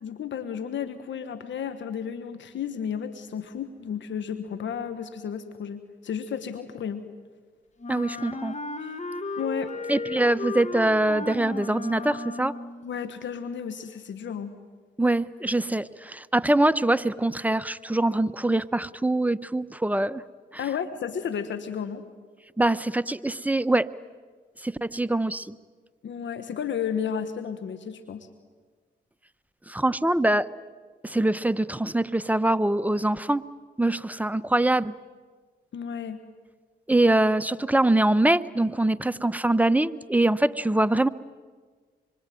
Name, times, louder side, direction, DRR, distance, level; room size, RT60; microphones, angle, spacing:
voice 1, 0.0-7.0 8.8-9.0 9.4-9.7 12.8-14.5 20.6-22.0 26.0-28.3 35.7-36.2, left 7 dB, 70° left, 9 dB, 1.5 m, -33 dB
Wind instrument woodwind instrument, 7.8-12.8, left 3 dB, 35° left, 2.1 m, -35 dB
voice 2, 7.9-8.5 9.9-12.6 15.0-20.2 22.6-23.9 24.6-25.6 29.7-30.5 31.0-33.5 33.8-34.9 36.9-41.1, right 1 dB, 10° right, 14 dB, 1.0 m, -23 dB
26.5 x 24.0 x 9.4 m, 1.5 s
supercardioid pair, 50°, 20 cm